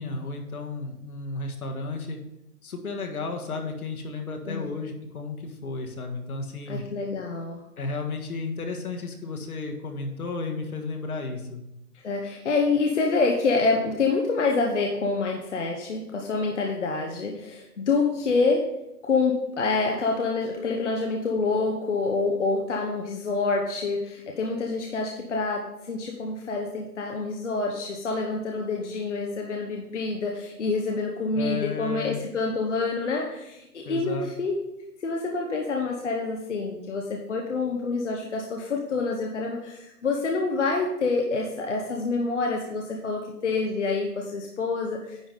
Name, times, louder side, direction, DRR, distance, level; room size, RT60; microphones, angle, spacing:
voice 1, 0.0-2.2 2.6-6.9 7.8-11.6 31.3-32.2 33.8-34.3, left 3 dB, 70° left, 3 dB, 1.7 m, -33 dB
voice 2, 6.7-7.6 12.0-18.7 19.0-34.6 35.0-45.3, left 3 dB, 50° left, 1 dB, 0.9 m, -27 dB
10.0 x 4.0 x 5.4 m, 0.88 s
hypercardioid pair, 175°, 45 cm